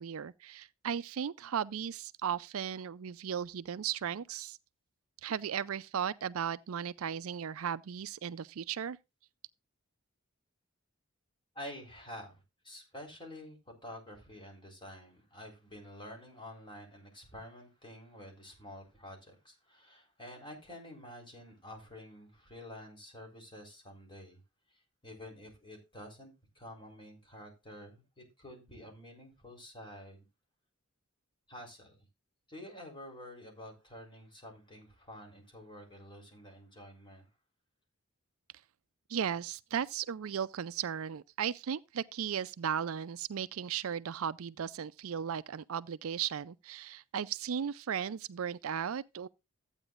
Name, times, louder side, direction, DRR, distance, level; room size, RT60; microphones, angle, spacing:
voice 1, 0.0-4.6 5.2-9.0 39.1-49.3, right 8 dB, 70° right, 0.4 m, -36 dB
voice 2, 11.5-24.4 24.7-30.3 31.5-32.0 32.5-37.3, left 1 dB, 25° left, 4.0 m, -49 dB
14.0 x 8.9 x 2.5 m
head